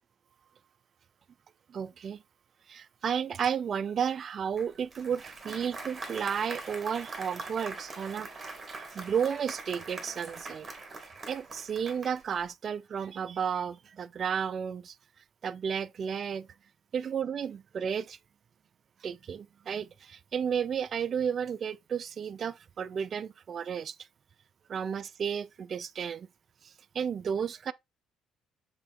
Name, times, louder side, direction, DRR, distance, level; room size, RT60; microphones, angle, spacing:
voice 1, 1.7-2.2 2.7-8.3 8.7-10.7 11.3-14.9 15.4-16.5 16.9-18.2 19.0-23.9 24.7-26.3 26.6-27.7, right 7 dB, 45° right, 0.4 m, -33 dB
Applause, 4.6-12.5, right 3 dB, 30° right, 2.1 m, -43 dB
6.9 x 3.8 x 3.6 m
cardioid pair, 95°, 0 cm